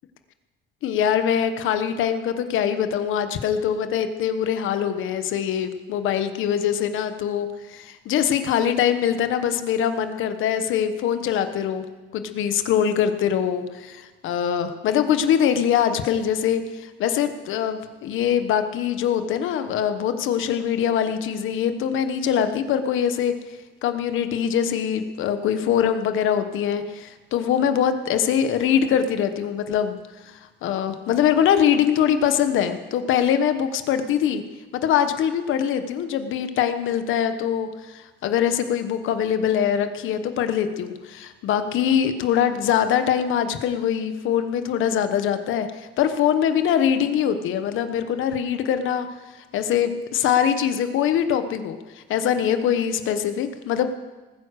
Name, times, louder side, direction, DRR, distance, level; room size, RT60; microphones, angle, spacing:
voice 1, 0.8-11.8 12.1-23.3 23.8-30.0 30.3-34.4 34.7-45.7 46.0-49.1 49.5-53.9, left 9 dB, 85° left, 9 dB, 1.2 m, -23 dB
20.0 x 9.8 x 6.6 m, 1.3 s
cardioid pair, 90°, 20 cm